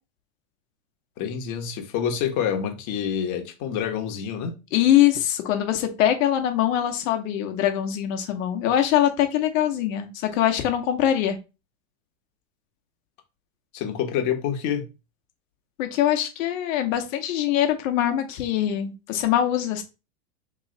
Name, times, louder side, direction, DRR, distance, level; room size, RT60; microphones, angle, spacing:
voice 1, 1.2-4.5 13.7-14.9, left 8 dB, 45° left, 1.2 m, -27 dB
voice 2, 4.7-11.4 15.8-19.8, left 11 dB, 65° left, 1.2 m, -23 dB
3.2 x 3.0 x 3.9 m
hypercardioid pair, 115°, 43 cm